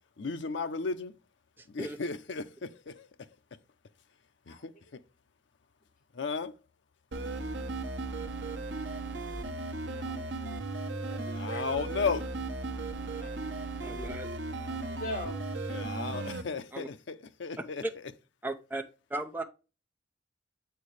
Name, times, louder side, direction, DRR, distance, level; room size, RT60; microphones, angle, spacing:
voice 1, 0.2-1.1 1.7-3.1 4.5-5.0 6.1-6.5 11.3-12.3 15.7-17.8, left 4 dB, 85° left, 0.6 m, -35 dB
voice 2, 1.6-2.0 13.8-14.3 16.7-16.9 18.4-18.8 19.1-19.4, right 2 dB, 10° right, 0.6 m, -36 dB
sound 1, 7.1-16.4, right 3 dB, 80° right, 1.0 m, -36 dB
voice 3, 9.6-10.3 11.0-11.6 12.9-15.4, equal, 45° left, 2.9 m, -44 dB
8.3 x 4.5 x 3.2 m
head